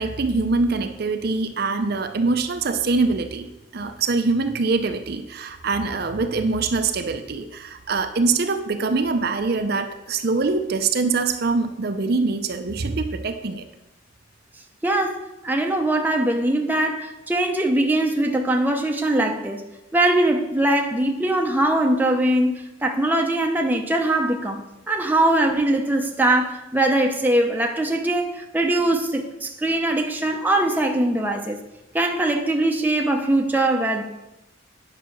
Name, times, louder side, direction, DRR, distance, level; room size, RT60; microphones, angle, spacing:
voice 1, 0.0-3.5 3.7-13.7, right 3 dB, 55° right, 0.6 m, -23 dB
voice 2, 14.8-19.6 19.9-31.6 31.9-34.0, right 1 dB, 10° right, 0.8 m, -21 dB
9.3 x 5.7 x 6.1 m
head